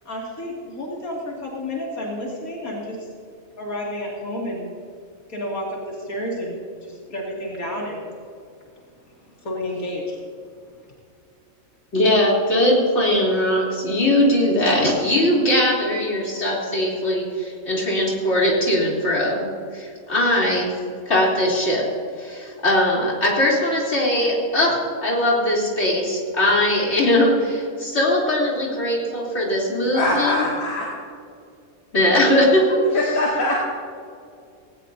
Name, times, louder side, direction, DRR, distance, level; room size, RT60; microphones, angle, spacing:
voice 1, 0.0-3.1 3.6-4.7 5.3-8.0 9.0-10.2, left 1 dB, 90° left, -3 dB, 3.0 m, -31 dB
voice 2, 11.9-20.7 21.1-21.9 22.2-30.5 31.9-32.8, left 1 dB, 50° left, -4 dB, 3.8 m, -20 dB
voice 3, 29.9-30.9 32.9-33.7, left 2 dB, 70° left, -4 dB, 2.7 m, -22 dB
18.5 x 18.0 x 2.8 m, 2.3 s
omnidirectional pair, 1.4 m